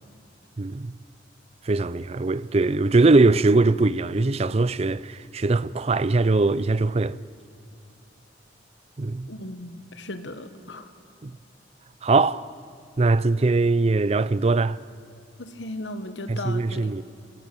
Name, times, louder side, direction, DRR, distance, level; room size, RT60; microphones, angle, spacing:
voice 1, 0.6-1.0 1.7-7.2 9.0-9.3 11.2-11.3 12.0-12.5 13.0-14.8 16.3-17.0, right 3 dB, 35° right, 0.5 m, -21 dB
voice 2, 9.3-10.9 15.4-17.0, left 1 dB, 80° left, 1.5 m, -36 dB
26.5 x 16.0 x 8.9 m
head